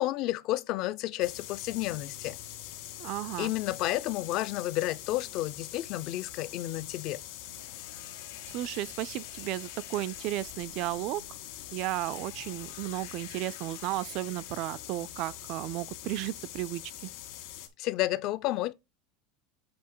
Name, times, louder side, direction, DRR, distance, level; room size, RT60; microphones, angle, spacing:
voice 1, 0.0-2.4 3.4-7.2 17.8-18.7, left 16 dB, 40° left, 0.5 m, -31 dB
sound 1, 1.2-17.7, left 13 dB, 60° left, 1.7 m, -44 dB
voice 2, 3.0-3.5 8.5-11.2 11.7-17.1, right 16 dB, 45° right, 0.4 m, -34 dB
sound 2, 7.4-15.2, left 10 dB, 85° left, 1.4 m, -53 dB
7.7 x 2.8 x 5.5 m
supercardioid pair, 165°, 0 cm